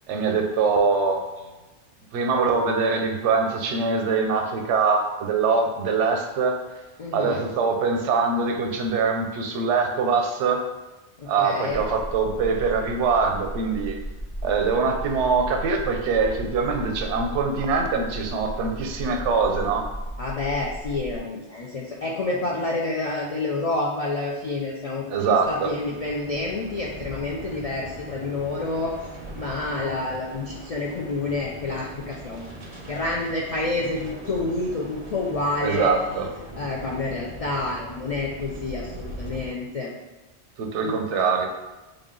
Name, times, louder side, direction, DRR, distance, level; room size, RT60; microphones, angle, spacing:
voice 1, 0.1-1.2 2.1-6.6 7.1-10.7 11.3-14.0 14.4-19.9 25.1-25.7 35.6-36.3 40.6-41.5, right 4 dB, 90° right, 4 dB, 0.9 m, -23 dB
voice 2, 7.0-7.5 11.2-11.9 20.2-28.9 29.4-32.6 32.9-35.9 36.5-39.9 40.8-41.0, left 2 dB, 70° left, -3 dB, 0.3 m, -28 dB
sound 1, 11.7-21.2, right 1 dB, 40° left, 1.2 m, -35 dB
sound 2, 25.4-39.5, right 1 dB, 40° right, 0.4 m, -40 dB
3.7 x 2.2 x 3.7 m, 1.1 s
omnidirectional pair, 1.2 m